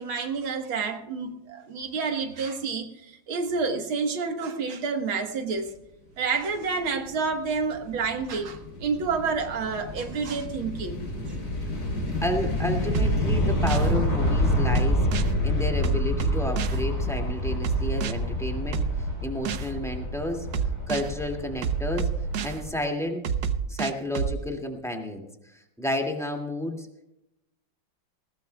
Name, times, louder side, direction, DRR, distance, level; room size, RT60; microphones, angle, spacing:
voice 1, 0.0-5.8 6.2-11.0, right 4 dB, 90° right, 5 dB, 2.2 m, -29 dB
sound 1, 7.2-22.7, left 1 dB, 55° left, 4.4 m, -28 dB
voice 2, 12.2-15.1 15.4-18.8 19.2-20.5 20.9-22.1 22.4-23.2 23.7-25.3 25.5-26.9, left 1 dB, ahead, 2 dB, 2.0 m, -31 dB
sound 2, 12.9-13.9 14.7-15.3 15.8-16.8 17.6-18.1 18.7-19.7 20.5-21.1 21.6-22.6 23.2-24.4, right 7 dB, 65° right, 1.4 m, -28 dB
19.0 x 18.5 x 2.3 m, 0.89 s
omnidirectional pair, 2.2 m